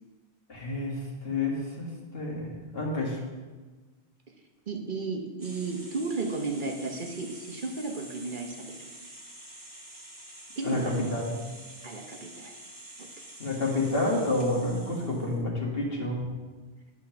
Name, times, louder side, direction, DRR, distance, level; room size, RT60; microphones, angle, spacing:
voice 1, 0.5-1.9 2.1-3.2 10.6-10.8 11.1-11.4 13.4-16.3, left 2 dB, 65° left, -3 dB, 2.1 m, -29 dB
voice 2, 4.7-8.9 10.6-11.1 11.8-12.6 13.0-13.3, right 3 dB, 50° right, 2 dB, 1.0 m, -34 dB
sound 1, 5.4-15.4, right 1 dB, 20° right, 1.2 m, -47 dB
11.0 x 4.3 x 5.7 m, 1.3 s
omnidirectional pair, 1.1 m